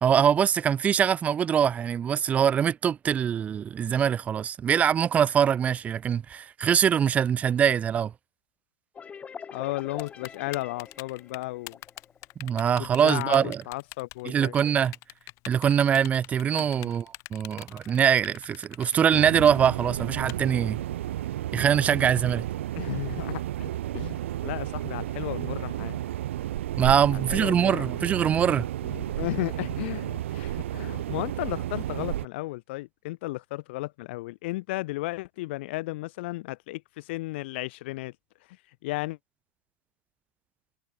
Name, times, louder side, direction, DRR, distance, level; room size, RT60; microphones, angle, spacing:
voice 1, 0.0-8.1 12.4-13.6 14.3-14.9 15.5-20.8 21.5-22.4 26.8-28.7, right 8 dB, 20° right, 0.5 m, -23 dB
sound 1, 8.9-12.5, left 6 dB, 20° left, 1.9 m, -44 dB
voice 2, 9.5-11.8 12.8-14.5 16.6-16.9 22.7-26.0 27.1-27.9 28.4-28.6 28.8-38.1 38.8-39.2, left 20 dB, 60° left, 1.1 m, -34 dB
Typing, 10.0-20.3, left 23 dB, 45° left, 7.9 m, -43 dB
sound 2, 19.1-32.3, right 13 dB, 80° right, 1.7 m, -32 dB
supercardioid pair, 130°, 7 cm